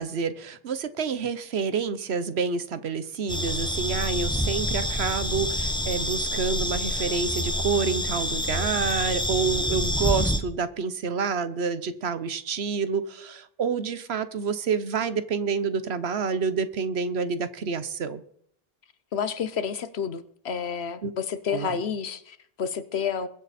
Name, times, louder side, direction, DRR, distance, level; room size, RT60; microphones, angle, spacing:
voice 1, 0.0-18.2 21.0-21.1 21.5-21.8, right 5 dB, 85° right, 13 dB, 1.2 m, -28 dB
sound 1, 3.3-10.4, left 1 dB, 5° left, 1.0 m, -27 dB
voice 2, 19.1-23.3, left 7 dB, 85° left, 13 dB, 1.2 m, -30 dB
22.0 x 7.7 x 4.2 m, 0.66 s
omnidirectional pair, 1.0 m